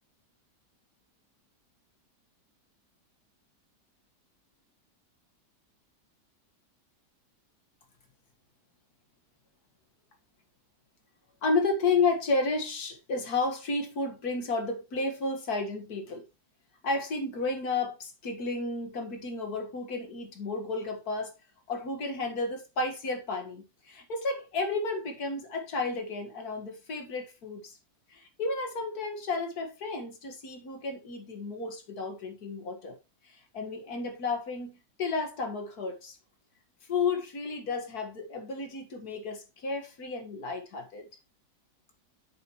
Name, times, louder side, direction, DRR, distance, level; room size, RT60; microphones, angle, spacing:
voice 1, 11.4-16.3 16.8-21.3 21.7-27.8 28.1-33.0 33.5-36.2 36.9-41.0, left 3 dB, 60° left, 2.1 m, -32 dB
7.8 x 6.5 x 3.0 m
omnidirectional pair, 1.9 m